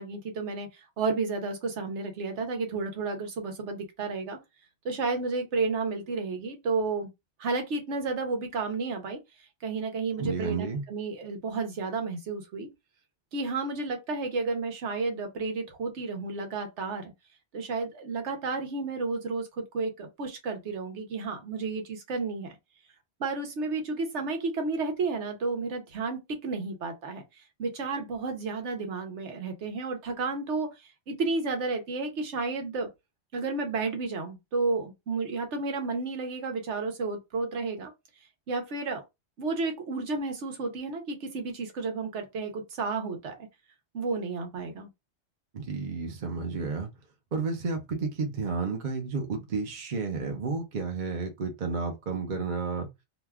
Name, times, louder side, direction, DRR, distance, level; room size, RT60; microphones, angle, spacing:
voice 1, 0.0-4.4 4.8-7.1 7.4-12.7 13.3-17.1 17.5-22.6 23.2-32.9 33.3-37.9 38.5-39.0 39.4-43.5 43.9-44.9, right 3 dB, 75° right, 1.1 m, -32 dB
voice 2, 10.2-10.8 45.5-46.9 47.3-52.9, right 4 dB, 45° right, 0.8 m, -31 dB
2.9 x 2.2 x 3.4 m
omnidirectional pair, 1.2 m